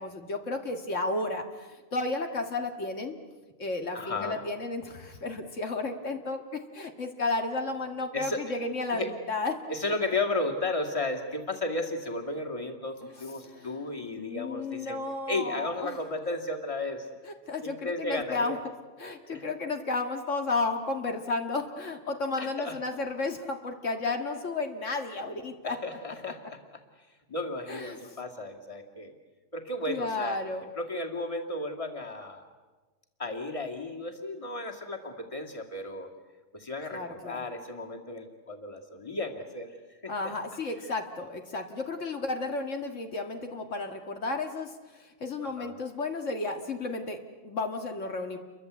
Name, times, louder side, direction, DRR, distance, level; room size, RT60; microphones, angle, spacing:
voice 1, 0.0-3.2 3.6-9.6 13.4-13.7 14.1-16.0 17.5-18.6 19.0-25.8 27.7-28.2 29.9-30.7 36.9-37.4 40.1-48.4, left 3 dB, 80° left, 4 dB, 2.3 m, -33 dB
voice 2, 3.9-4.4 8.1-8.6 8.9-9.1 9.7-15.0 15.3-17.1 17.6-18.6 19.3-19.4 22.4-22.8 25.6-26.8 27.3-29.1 29.5-30.4 30.7-32.4 33.2-36.1 36.5-39.8 40.0-40.1 45.4-45.8, left 2 dB, 25° left, 2 dB, 2.7 m, -34 dB
29.5 x 23.5 x 8.3 m, 1.3 s
omnidirectional pair, 1.3 m